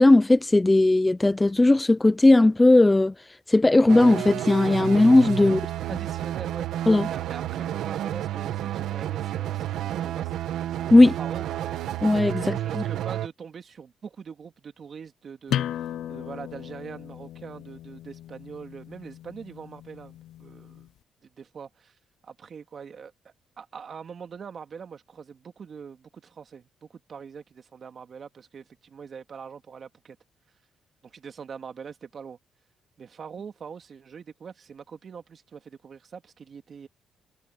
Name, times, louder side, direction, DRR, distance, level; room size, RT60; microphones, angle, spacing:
voice 1, 0.0-3.1 3.5-5.6 6.9-7.1 10.9-11.1 12.0-12.8, left 2 dB, 15° left, 0.7 m, -17 dB
sound 1, 3.9-13.3, right 12 dB, 80° right, 1.8 m, -30 dB
voice 2, 5.4-10.4 11.2-11.5 12.4-20.9 21.4-21.9 22.2-30.2 31.0-32.4 33.0-36.9, right 6 dB, 50° right, 2.3 m, -43 dB
sound 2, 15.5-20.9, left 11 dB, 80° left, 0.6 m, -36 dB
cardioid pair, 90°, 0 cm